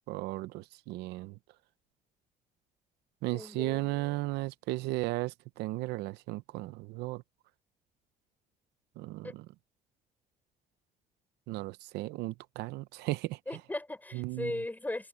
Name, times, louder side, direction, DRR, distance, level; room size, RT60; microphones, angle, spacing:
voice 1, 0.1-1.4 3.2-7.2 9.0-9.4 11.5-13.4 14.1-14.5, right 19 dB, 90° right, 0.7 m, -35 dB
voice 2, 3.3-4.2 9.2-9.3 13.5-15.1, left 2 dB, 10° left, 5.3 m, -38 dB
cardioid pair, 110°, 17 cm